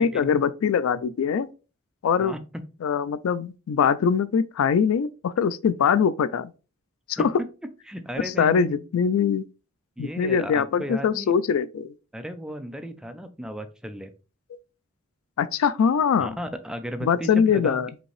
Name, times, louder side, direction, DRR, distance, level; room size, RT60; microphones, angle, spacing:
voice 1, 0.0-1.5 2.0-2.4 2.8-6.5 7.1-7.3 8.2-9.5 10.0-11.9 15.4-16.4 17.0-17.9, left 6 dB, 75° left, 0.3 m, -22 dB
voice 2, 7.2-8.8 10.0-11.3 12.1-14.1 16.2-17.8, equal, 5° right, 0.4 m, -35 dB
5.1 x 2.8 x 3.1 m
head